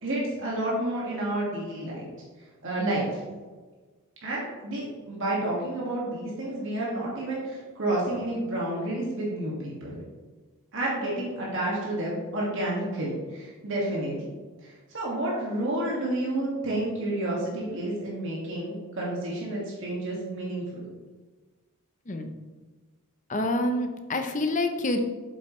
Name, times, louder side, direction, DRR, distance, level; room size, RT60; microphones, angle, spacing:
voice 1, 0.0-2.1 2.6-3.2 4.2-10.0 10.7-14.3 14.6-20.9, right 1 dB, 60° right, -5 dB, 2.1 m, -30 dB
voice 2, 23.3-25.0, left 1 dB, 35° left, 6 dB, 0.8 m, -27 dB
7.8 x 7.6 x 3.2 m, 1.3 s
head